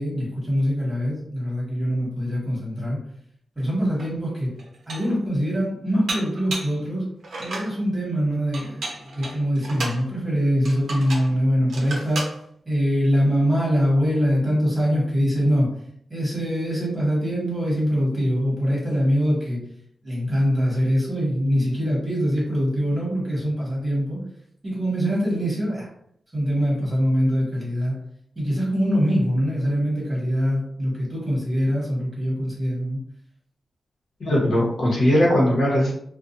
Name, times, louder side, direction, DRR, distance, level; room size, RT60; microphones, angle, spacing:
voice 1, 0.0-3.0 3.6-4.5 4.9-7.1 7.4-12.2 12.6-15.7 16.1-19.6 20.0-24.2 24.6-25.9 26.3-27.9 28.3-33.0, equal, 15° right, -5 dB, 1.3 m, -23 dB
Dishes pots and pans, 4.0-4.1 4.6-5.2 6.1-6.8 7.2-7.7 8.5-10.0 10.6-11.3 11.7-12.4, right 2 dB, 80° right, 0.6 m, -33 dB
voice 2, 34.2-35.9, equal, 65° left, -4 dB, 1.0 m, -19 dB
2.4 x 2.2 x 2.6 m, 0.69 s
wide cardioid pair, 120°, 0 cm